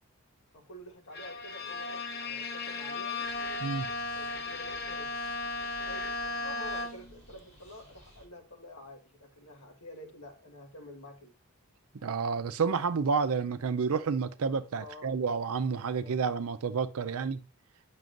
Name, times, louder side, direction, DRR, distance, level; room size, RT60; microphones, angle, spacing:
voice 1, 0.5-3.2 4.1-5.2 5.8-11.3 14.8-15.1 16.0-16.2, left 1 dB, 80° left, 1.5 m, -49 dB
Bowed string instrument, 1.1-7.2, left 3 dB, 45° left, 0.7 m, -36 dB
sound 1, 3.2-8.2, right 1 dB, 5° left, 4.5 m, -56 dB
voice 2, 12.0-17.4, right 5 dB, 80° right, 0.5 m, -30 dB
9.2 x 6.1 x 2.5 m
head